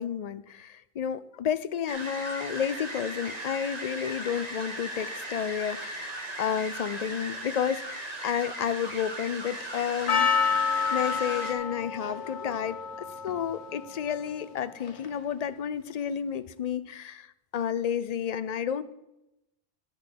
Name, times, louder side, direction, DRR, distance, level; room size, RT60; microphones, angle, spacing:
voice 1, 0.0-10.3 10.9-12.8 13.2-17.3 17.5-18.8, left 8 dB, 50° left, 14 dB, 0.5 m, -31 dB
sound 1, 1.9-11.5, right 1 dB, 40° right, 1.4 m, -37 dB
Percussion, 10.1-15.3, left 6 dB, 90° left, 1.2 m, -30 dB
11.5 x 6.6 x 6.0 m, 0.91 s
omnidirectional pair, 1.1 m